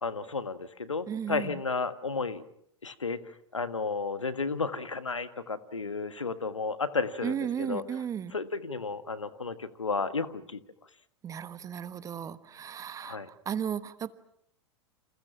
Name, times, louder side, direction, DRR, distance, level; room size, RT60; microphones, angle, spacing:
voice 1, 0.0-2.4 2.8-8.0 8.3-10.6 13.0-13.3, left 4 dB, 80° left, 12 dB, 1.6 m, -33 dB
voice 2, 1.1-1.5 7.2-8.3 11.2-13.2 13.4-14.1, right 8 dB, 20° right, 14 dB, 1.3 m, -34 dB
30.0 x 27.5 x 6.0 m, 0.70 s
figure-of-eight pair, 95°, 16 cm